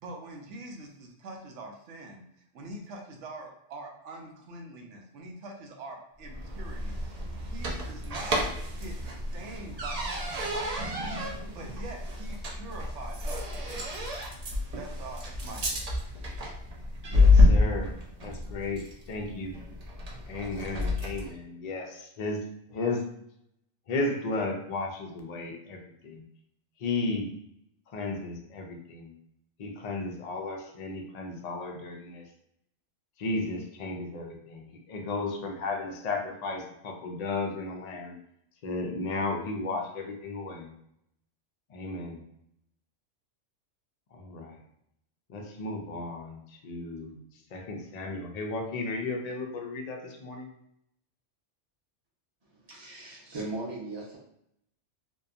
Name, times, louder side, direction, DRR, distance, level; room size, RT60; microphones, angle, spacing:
voice 1, 0.0-8.4 8.8-14.0 14.4-15.9, right 2 dB, 80° right, 1 dB, 0.9 m, -44 dB
sound 1, 6.3-21.3, left 2 dB, 60° right, 0.4 m, -28 dB
voice 2, 17.1-17.9 18.2-19.6 20.3-23.1 23.9-26.2 26.8-27.3 27.9-29.1 29.6-32.3 33.2-38.1 38.6-40.7 41.7-42.2 44.1-44.6 45.3-47.2 47.5-50.5, left 3 dB, 65° left, 2 dB, 0.4 m, -34 dB
voice 3, 52.5-54.2, right 2 dB, 25° right, -4 dB, 0.7 m, -38 dB
2.8 x 2.2 x 2.4 m, 0.75 s
omnidirectional pair, 1.2 m